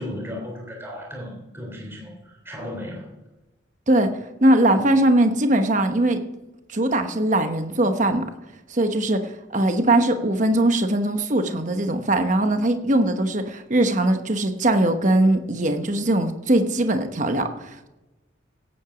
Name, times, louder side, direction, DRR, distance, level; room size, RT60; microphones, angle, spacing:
voice 1, 0.0-3.1, left 1 dB, 10° right, -1 dB, 3.5 m, -35 dB
voice 2, 3.9-6.2 6.7-8.2 8.7-17.9, right 1 dB, 40° right, 7 dB, 1.0 m, -21 dB
17.0 x 8.7 x 5.1 m, 1.0 s
head